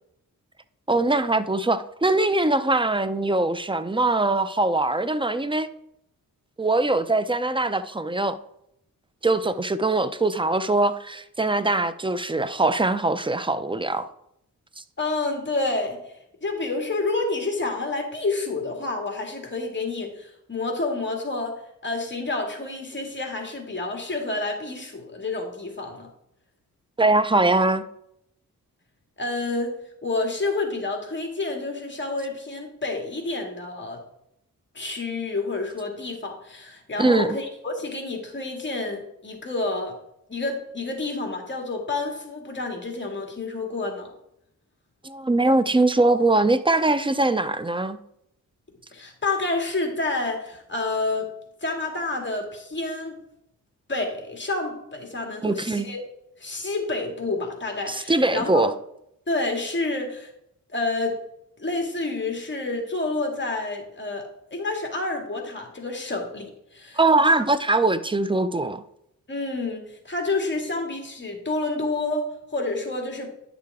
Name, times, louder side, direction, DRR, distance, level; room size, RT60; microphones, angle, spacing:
voice 1, 0.9-5.7 6.6-8.4 9.2-14.1 27.0-27.8 37.0-37.3 45.0-48.0 55.4-55.9 57.9-58.7 67.0-68.8, right 2 dB, 15° right, 0.5 m, -22 dB
voice 2, 15.0-26.1 29.2-29.7 30.0-34.0 34.7-40.0 40.3-44.1 48.9-51.3 51.6-53.2 53.9-56.0 56.4-58.7 59.3-60.3 60.7-61.2 61.6-67.0 67.2-67.4 69.3-73.3, left 3 dB, 35° left, 2.1 m, -29 dB
10.0 x 6.6 x 3.5 m
cardioid pair, 85°, 34 cm